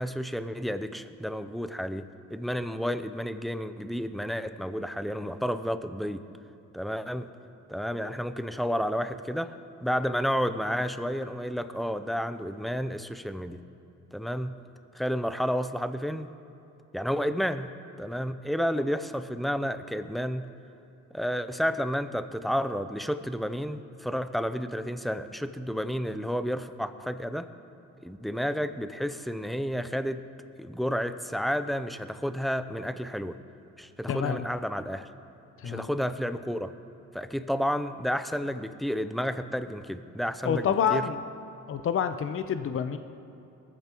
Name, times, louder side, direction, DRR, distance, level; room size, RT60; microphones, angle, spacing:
voice 1, 0.0-6.2 6.7-7.3 7.7-13.6 14.1-14.5 14.9-16.3 16.9-17.7 18.0-20.4 21.1-27.5 28.0-30.2 30.6-33.4 33.8-35.1 35.6-36.7 37.1-41.0, equal, ahead, 10 dB, 0.6 m, -31 dB
voice 2, 34.1-34.4 35.6-35.9 40.4-41.2 41.7-43.0, left 8 dB, 45° left, 9 dB, 0.7 m, -27 dB
21.0 x 14.5 x 3.0 m, 2.8 s
cardioid pair, 90°, 30 cm